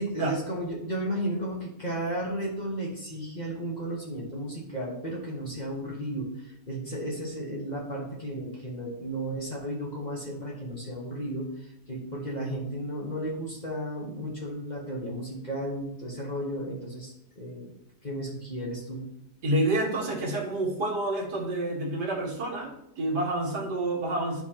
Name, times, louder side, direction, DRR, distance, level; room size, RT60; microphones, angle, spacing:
voice 1, 0.0-17.7 18.0-19.1, right 1 dB, 30° left, -3 dB, 1.3 m, -34 dB
voice 2, 19.4-24.4, right 1 dB, 80° right, -1 dB, 2.2 m, -28 dB
11.5 x 4.4 x 2.9 m, 0.80 s
omnidirectional pair, 1.8 m